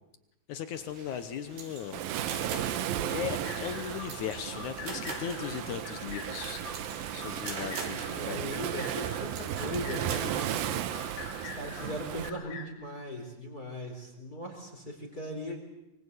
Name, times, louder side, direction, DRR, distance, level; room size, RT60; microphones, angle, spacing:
voice 1, 0.5-2.0 3.1-8.5, left 9 dB, 75° left, 11 dB, 1.8 m, -38 dB
sound 1, 0.7-10.2, right 5 dB, 85° right, 5.4 m, -45 dB
Waves surf, 1.9-12.3, right 11 dB, 70° right, 2.6 m, -35 dB
sound 2, 3.4-12.7, left 5 dB, 55° left, 3.9 m, -45 dB
voice 2, 8.1-10.8 11.2-15.6, left 1 dB, 20° left, 2 dB, 3.9 m, -39 dB
24.5 x 24.0 x 8.3 m, 0.91 s
omnidirectional pair, 4.9 m